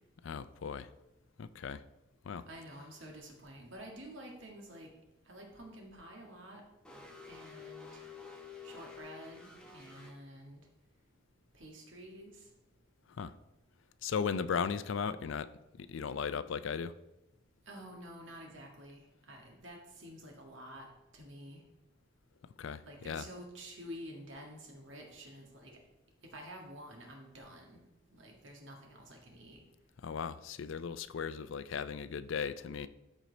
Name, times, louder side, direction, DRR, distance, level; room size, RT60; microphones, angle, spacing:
voice 1, 0.2-0.9 1.4-1.8 2.2-2.5 13.1-13.4 14.0-15.5 15.8-16.9 22.6-23.3 30.0-32.9, left 6 dB, 65° left, 13 dB, 0.4 m, -37 dB
voice 2, 2.4-4.9 5.3-6.6 7.3-8.0 8.6-10.6 11.5-12.5 17.7-20.9 21.1-21.6 22.9-25.7 26.3-27.8 28.1-29.6, equal, 65° right, 1 dB, 1.9 m, -49 dB
sound 1, 6.8-10.1, left 5 dB, 5° left, 1.2 m, -50 dB
13.5 x 4.5 x 4.1 m, 0.95 s
head